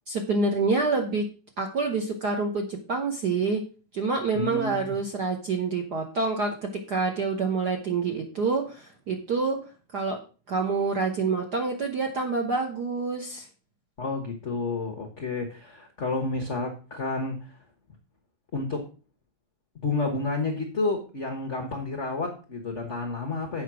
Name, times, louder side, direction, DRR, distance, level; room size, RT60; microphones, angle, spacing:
voice 1, 0.1-1.3 1.6-3.6 3.9-9.6 9.9-10.2 10.5-13.5, right 4 dB, 60° right, 3 dB, 1.1 m, -27 dB
voice 2, 4.3-4.9 14.0-17.4 18.5-18.8 19.8-23.6, left 3 dB, 80° left, 2 dB, 0.6 m, -30 dB
8.3 x 5.4 x 6.1 m, 0.36 s
omnidirectional pair, 3.3 m